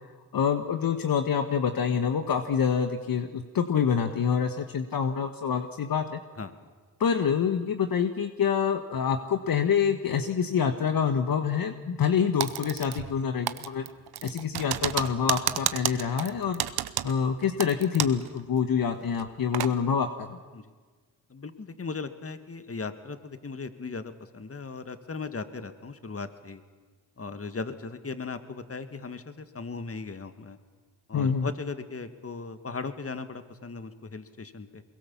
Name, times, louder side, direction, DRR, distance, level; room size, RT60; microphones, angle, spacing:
voice 1, 0.3-6.2 7.0-13.9 14.2-16.6 17.0-20.4 31.1-31.5, left 7 dB, 60° left, 7 dB, 1.4 m, -26 dB
Typing, 12.4-13.2 13.5-18.3 18.6-18.7 19.1-19.7, right 12 dB, 70° right, 1.0 m, -31 dB
voice 2, 21.3-26.6 27.2-30.6 31.1-34.8, left 4 dB, 35° left, 10 dB, 2.0 m, -37 dB
23.5 x 22.0 x 7.2 m, 1.5 s
supercardioid pair, 45°, 39 cm